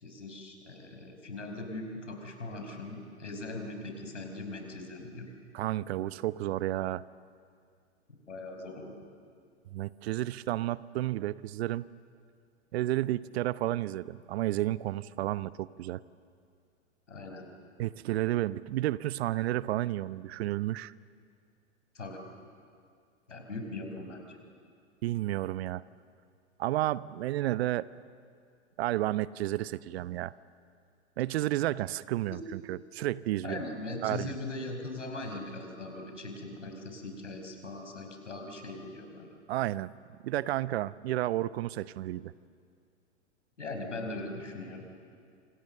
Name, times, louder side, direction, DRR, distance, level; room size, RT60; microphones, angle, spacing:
voice 1, 0.0-5.3 8.1-9.0 17.1-17.5 21.9-22.2 23.3-24.4 32.3-32.4 33.4-39.3 43.6-44.9, left 2 dB, 90° left, 4 dB, 5.6 m, -40 dB
voice 2, 5.5-7.0 9.7-11.8 12.7-16.0 17.8-20.9 25.0-25.8 26.6-27.9 28.8-30.3 31.2-33.6 34.0-34.4 39.5-39.9 40.2-42.3, right 15 dB, 60° right, 17 dB, 0.8 m, -31 dB
27.0 x 27.0 x 6.8 m, 2.3 s
hypercardioid pair, 105°, 36 cm